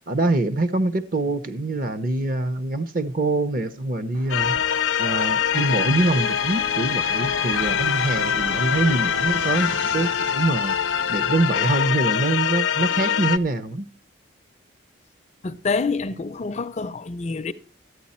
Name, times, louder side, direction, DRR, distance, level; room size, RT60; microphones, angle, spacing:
voice 1, 0.1-4.6 5.0-10.8 11.1-13.9, right 2 dB, 45° right, 0.7 m, -24 dB
Fixed-wing aircraft airplane, 4.1-11.8, right 1 dB, 65° right, 2.5 m, -38 dB
sound 1, 4.3-13.4, left 8 dB, 90° left, 0.6 m, -24 dB
voice 2, 15.4-17.5, left 4 dB, 35° left, 0.4 m, -27 dB
13.0 x 8.9 x 4.2 m
head